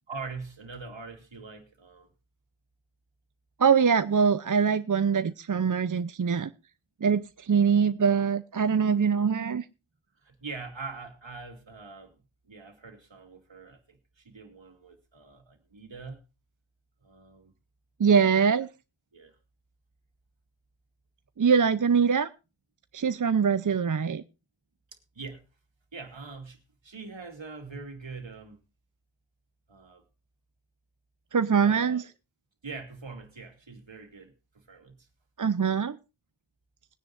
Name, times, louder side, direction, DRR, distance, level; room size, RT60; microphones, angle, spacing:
voice 1, 0.1-2.1 10.2-12.2 12.4-16.2 17.0-17.5 18.5-18.6 19.1-19.4 24.9-25.4 25.9-28.6 29.7-30.0 31.6-32.1 32.6-35.1, right 4 dB, 70° right, 2.8 m, -43 dB
voice 2, 3.6-6.5 7.0-9.6 18.0-18.7 21.4-22.3 22.9-24.2 31.3-32.0 35.4-36.0, right 6 dB, 40° right, 0.6 m, -23 dB
21.0 x 9.9 x 2.5 m
wide cardioid pair, 50°, 47 cm